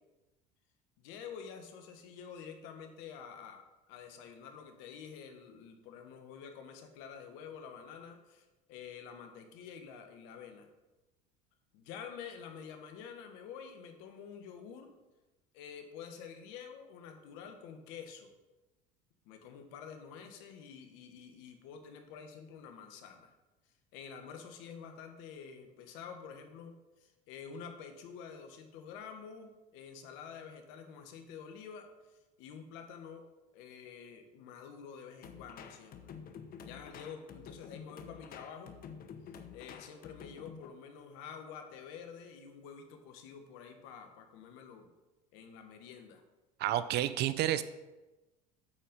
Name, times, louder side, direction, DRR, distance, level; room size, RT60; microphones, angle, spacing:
voice 1, 1.0-10.7 11.7-14.9 15.5-18.3 19.2-23.3 23.9-33.2 33.5-36.2 36.6-38.7 39.5-44.9 45.3-46.2, left 7 dB, 70° left, 6 dB, 1.3 m, -48 dB
sound 1, 35.2-40.7, left 7 dB, 45° left, 0.8 m, -49 dB
voice 2, 46.6-47.6, right 12 dB, 55° right, 14 dB, 0.5 m, -30 dB
8.6 x 4.5 x 5.3 m, 1.1 s
hypercardioid pair, 85°, 21 cm